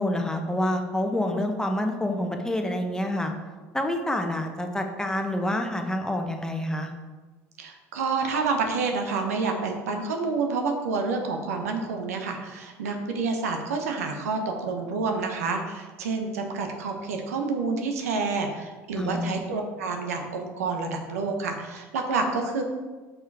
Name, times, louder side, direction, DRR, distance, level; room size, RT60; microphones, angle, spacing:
voice 1, 0.0-3.3 3.7-6.9 19.0-19.4, left 1 dB, 10° left, 4 dB, 1.0 m, -27 dB
voice 2, 7.6-22.6, right 4 dB, 80° right, 3 dB, 0.9 m, -28 dB
6.3 x 4.6 x 4.7 m, 1.3 s
hypercardioid pair, 70°, 8 cm